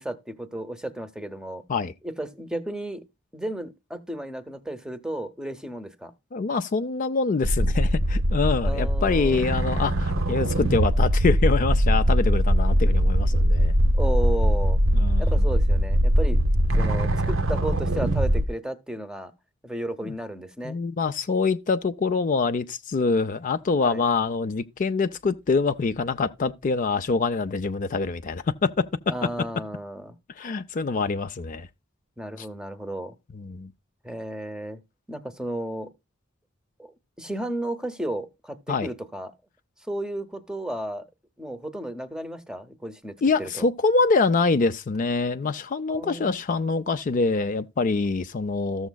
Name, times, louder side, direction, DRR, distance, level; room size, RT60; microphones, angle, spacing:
voice 1, 0.0-1.6 2.0-3.0 3.3-6.1 8.6-9.5 13.9-14.8 15.2-16.4 16.8-19.3 19.6-20.8 23.8-24.0 29.1-30.1 32.2-33.1 34.0-34.8 35.1-35.9 36.8-39.3 39.9-41.0 41.4-43.6 45.9-46.4, right 1 dB, 5° right, 0.7 m, -33 dB
voice 2, 6.3-13.7 14.9-15.3 20.0-20.1 20.6-28.8 30.4-31.7 32.4-32.5 33.3-33.7 38.7-38.9 43.2-48.9, left 4 dB, 40° left, 0.4 m, -25 dB
sound 1, 7.4-18.5, equal, 80° right, 0.9 m, -21 dB
14.0 x 7.1 x 2.2 m
head